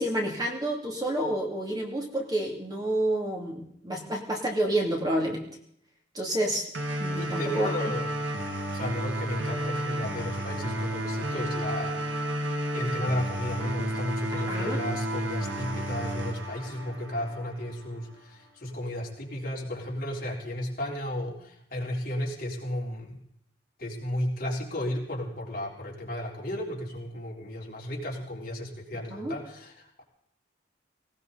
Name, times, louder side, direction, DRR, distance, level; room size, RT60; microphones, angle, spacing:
voice 1, 0.0-5.4 6.1-6.7 7.0-7.9 14.3-14.8 29.1-29.3, right 1 dB, 20° right, 0 dB, 2.6 m, -29 dB
sound 1, 6.7-17.7, right 1 dB, 90° right, 2.2 m, -32 dB
voice 2, 7.2-8.2 8.7-12.0 12.7-23.2 23.8-30.0, left 1 dB, 45° left, -3 dB, 3.8 m, -34 dB
19.0 x 18.0 x 4.1 m, 0.69 s
head